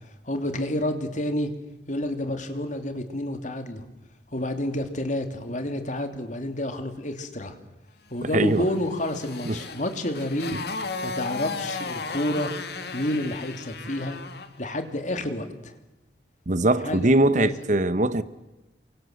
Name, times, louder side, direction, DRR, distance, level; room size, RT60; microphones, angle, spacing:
voice 1, 0.2-1.5 1.9-3.9 4.3-7.6 8.1-10.6 11.0-12.5 12.9-14.2 14.6-15.8 16.8-17.5, left 1 dB, 45° left, 2.8 m, -29 dB
voice 2, 8.3-8.7 9.4-9.6 16.5-18.2, right 2 dB, 45° right, 1.0 m, -21 dB
Motorcycle, 8.5-14.6, left 4 dB, 65° left, 2.2 m, -35 dB
28.5 x 24.5 x 7.8 m
head